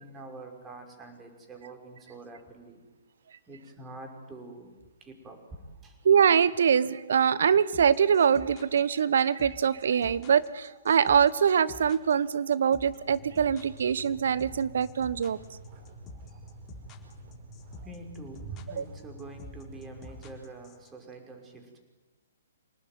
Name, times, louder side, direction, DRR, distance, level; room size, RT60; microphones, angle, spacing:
voice 1, 0.0-2.8 3.5-4.7 5.0-6.0 16.3-16.4 17.8-21.8, right 2 dB, 15° right, 3 dB, 5.6 m, -45 dB
sound 1, 6.0-20.4, right 1 dB, 40° right, 5.5 m, -51 dB
voice 2, 6.0-15.4, right 7 dB, 65° right, 17 dB, 1.2 m, -23 dB
sound 2, 7.7-20.9, left 3 dB, 25° left, 4.2 m, -48 dB
26.5 x 18.5 x 9.5 m, 1.2 s
figure-of-eight pair, 125°, 0 cm